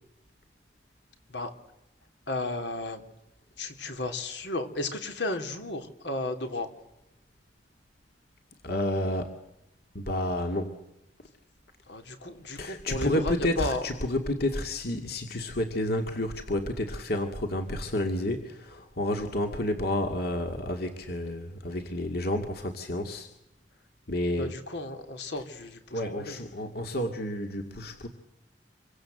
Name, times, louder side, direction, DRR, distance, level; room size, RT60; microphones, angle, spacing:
voice 1, 2.3-3.0 3.6-6.7 11.9-13.9 24.4-26.4, left 2 dB, 85° left, 6 dB, 3.4 m, -34 dB
voice 2, 8.6-9.4 9.9-10.8 12.5-23.3 24.1-24.5 25.9-28.1, left 1 dB, 60° left, 4 dB, 2.2 m, -30 dB
27.0 x 24.0 x 7.9 m, 0.88 s
head